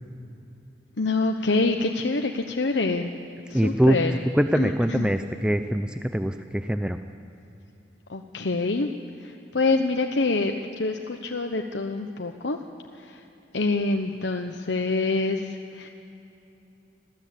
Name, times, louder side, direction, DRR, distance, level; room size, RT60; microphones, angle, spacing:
voice 1, 1.0-3.1 3.5-4.2 4.5-5.1 8.1-8.9 9.2-12.6 13.0-13.2 13.5-15.9, left 3 dB, 85° left, 4 dB, 1.0 m, -26 dB
voice 2, 3.5-4.0 4.3-7.0, equal, 5° right, 8 dB, 0.5 m, -23 dB
26.0 x 15.0 x 8.5 m, 2.9 s
head